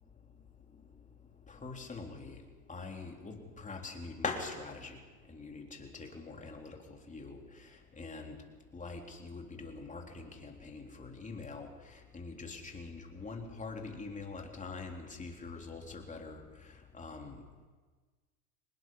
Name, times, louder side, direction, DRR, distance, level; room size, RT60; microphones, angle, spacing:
voice 1, 0.1-17.7, left 4 dB, 15° left, 2 dB, 3.5 m, -44 dB
24.5 x 20.0 x 5.6 m, 1.4 s
hypercardioid pair, 95°, 46 cm